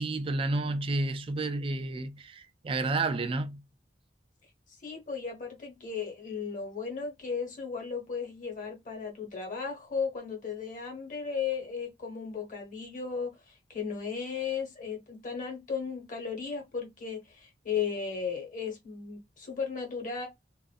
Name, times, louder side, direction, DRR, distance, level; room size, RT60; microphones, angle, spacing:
voice 1, 0.0-3.6, right 2 dB, 30° right, 0.3 m, -31 dB
voice 2, 4.8-20.3, left 6 dB, 50° left, 1.1 m, -35 dB
2.5 x 2.4 x 2.3 m
head